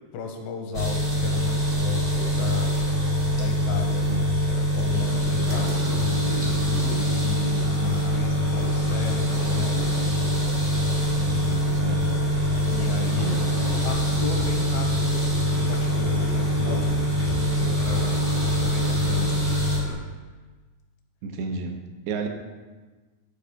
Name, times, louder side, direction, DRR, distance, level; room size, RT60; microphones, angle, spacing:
voice 1, 0.1-2.8 3.1-9.9 11.1-11.8 12.7-13.4 13.8-17.0 17.3-19.4, left 4 dB, 85° left, 3 dB, 2.7 m, -35 dB
sound 1, 0.7-19.8, equal, 50° right, 0.6 m, -24 dB
Fire, 4.9-19.9, left 2 dB, 65° left, 0.6 m, -38 dB
voice 2, 21.2-21.8 22.1-22.3, right 4 dB, 80° right, 3 dB, 2.9 m, -31 dB
12.0 x 4.8 x 3.4 m, 1.3 s
omnidirectional pair, 5.1 m